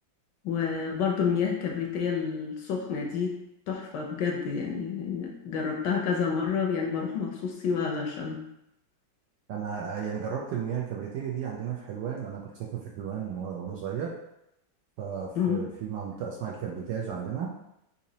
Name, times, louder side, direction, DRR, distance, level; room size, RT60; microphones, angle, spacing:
voice 1, 0.4-3.4 3.7-8.4 15.4-15.7, left 6 dB, 75° left, 1 dB, 1.1 m, -29 dB
voice 2, 9.5-14.1 15.0-17.5, right 7 dB, 75° right, -2 dB, 1.0 m, -34 dB
4.0 x 2.8 x 2.7 m, 0.84 s
omnidirectional pair, 2.1 m